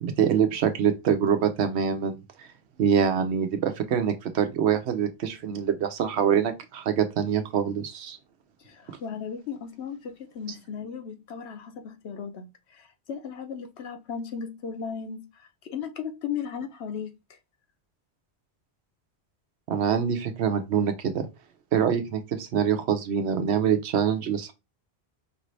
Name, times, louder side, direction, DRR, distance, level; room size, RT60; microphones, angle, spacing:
voice 1, 0.0-2.5 2.8-8.2 19.7-21.3 21.7-24.5, right 8 dB, 80° right, 1.0 m, -25 dB
voice 2, 8.6-17.4, left 7 dB, 80° left, 1.0 m, -36 dB
5.1 x 2.6 x 3.2 m
omnidirectional pair, 1.1 m